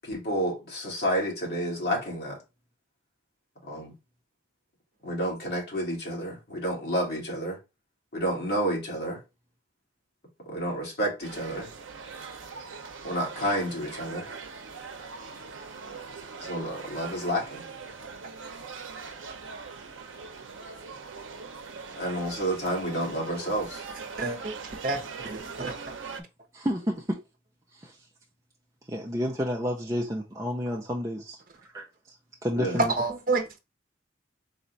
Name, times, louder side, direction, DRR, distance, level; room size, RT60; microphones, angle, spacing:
voice 1, 0.0-2.4 3.6-3.9 5.0-7.6 8.1-9.2 10.5-11.7 13.0-14.3 16.4-17.6 22.0-23.8 32.6-32.8, equal, 55° left, 2.0 m, -30 dB
sound 1, 11.2-26.2, right 5 dB, 90° right, 0.6 m, -41 dB
voice 2, 24.2-24.5 24.8-25.8 32.8-33.6, right 3 dB, 45° right, 0.8 m, -28 dB
voice 3, 26.5-27.2 27.7-28.0 28.9-31.4 31.7-32.2 32.4-32.9, equal, 15° right, 0.5 m, -30 dB
4.1 x 2.4 x 3.9 m
head